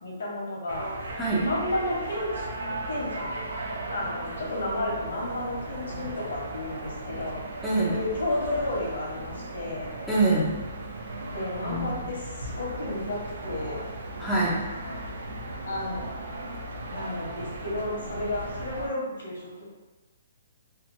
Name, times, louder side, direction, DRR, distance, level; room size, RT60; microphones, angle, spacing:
voice 1, 0.0-0.9 1.4-2.5 2.8-3.4 3.9-7.4 7.9-9.9 11.3-13.9 14.8-15.0 15.6-16.0 16.9-19.6, left 1 dB, 80° left, -3 dB, 1.0 m, -32 dB
sound 1, 0.7-18.9, right 1 dB, 75° right, 0.4 m, -37 dB
voice 2, 7.6-8.0 10.1-10.5 11.6-12.0 14.2-14.6, right 2 dB, ahead, -8 dB, 0.4 m, -24 dB
2.8 x 2.2 x 2.5 m, 1.1 s
hypercardioid pair, 165°, 0 cm